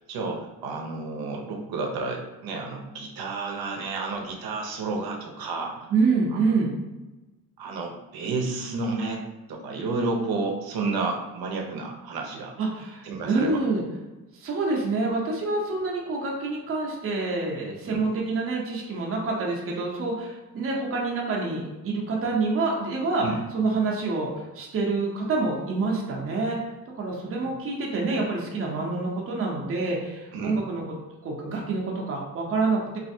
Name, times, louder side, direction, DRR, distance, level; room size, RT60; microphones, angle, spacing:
voice 1, 0.0-5.9 6.3-6.4 7.6-9.2 9.5-12.5 13.0-13.6 17.8-18.1 23.2-23.4 30.3-30.6, right 3 dB, 85° right, 1 dB, 0.7 m, -31 dB
voice 2, 5.9-6.7 12.6-13.8 14.3-23.3 23.5-24.3 24.5-26.6 27.0-30.8 31.2-33.0, right 3 dB, 40° right, -2 dB, 0.6 m, -27 dB
3.2 x 2.5 x 2.6 m, 1.1 s
cardioid pair, 155°, 35 cm